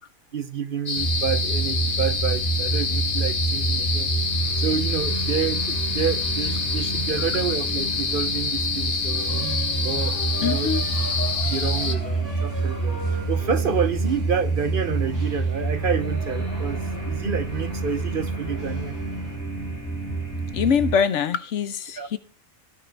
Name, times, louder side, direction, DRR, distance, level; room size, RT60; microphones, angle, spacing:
voice 1, 0.3-4.1 4.6-9.2 9.8-10.7 11.4-19.0 22.0-22.1, right 6 dB, 50° right, 0.9 m, -29 dB
sound 1, 0.9-12.0, left 5 dB, 45° left, 1.1 m, -27 dB
sound 2, 1.0-20.9, right 3 dB, 15° left, 3.8 m, -28 dB
sound 3, 9.1-19.3, equal, 20° right, 3.9 m, -38 dB
voice 2, 10.4-10.8 20.5-22.2, left 7 dB, 70° left, 1.1 m, -23 dB
19.0 x 6.4 x 3.4 m
omnidirectional pair, 1.3 m